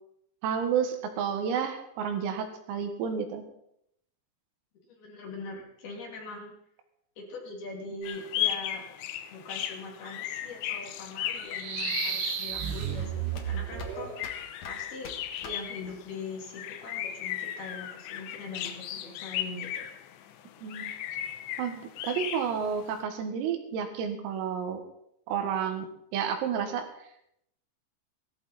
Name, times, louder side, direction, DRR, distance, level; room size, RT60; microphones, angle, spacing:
voice 1, 0.4-3.4 20.6-20.9 21.6-24.8 25.3-26.9, right 7 dB, 90° right, 6 dB, 4.4 m, -31 dB
voice 2, 4.9-6.5 7.2-8.9 9.3-15.1 15.4-19.9, left 3 dB, 55° left, -1 dB, 4.3 m, -42 dB
sound 1, 8.0-23.0, left 11 dB, 90° left, 2.4 m, -36 dB
sound 2, 10.3-16.3, left 4 dB, 70° left, 1.6 m, -47 dB
sound 3, 11.4-14.2, right 9 dB, 70° right, 3.5 m, -33 dB
17.5 x 14.0 x 4.2 m, 0.75 s
omnidirectional pair, 5.9 m